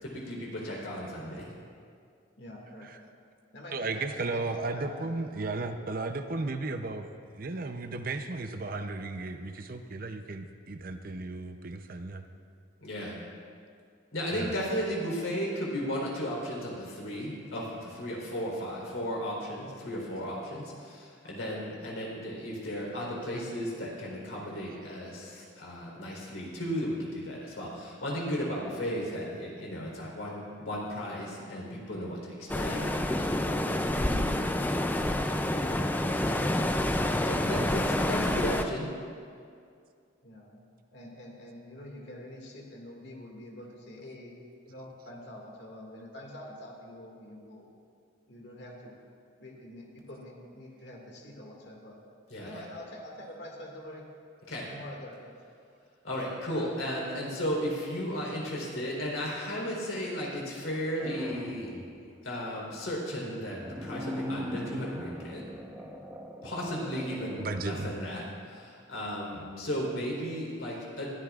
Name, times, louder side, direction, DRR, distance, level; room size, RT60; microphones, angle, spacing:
voice 1, 0.0-1.5 12.8-13.2 14.1-35.4 35.8-38.9 52.3-52.6 54.5-54.7 56.0-61.7 62.2-65.4 66.4-71.1, equal, 90° left, -3 dB, 3.8 m, -35 dB
voice 2, 2.4-2.9 3.5-4.9 35.4-35.8 40.2-40.6 40.9-44.3 44.6-47.7 48.3-48.9 49.4-52.0 52.4-54.1 54.7-55.3, left 1 dB, 60° left, -1 dB, 2.1 m, -46 dB
voice 3, 3.7-12.2 14.3-14.6 25.4-25.5 67.4-67.9, right 3 dB, 45° right, 7 dB, 0.6 m, -35 dB
sound 1, 32.5-38.6, left 1 dB, 10° left, 0.4 m, -28 dB
sound 2, 61.0-62.1 63.2-67.7, equal, 10° right, 0.9 m, -40 dB
21.0 x 14.0 x 2.4 m, 2.3 s
head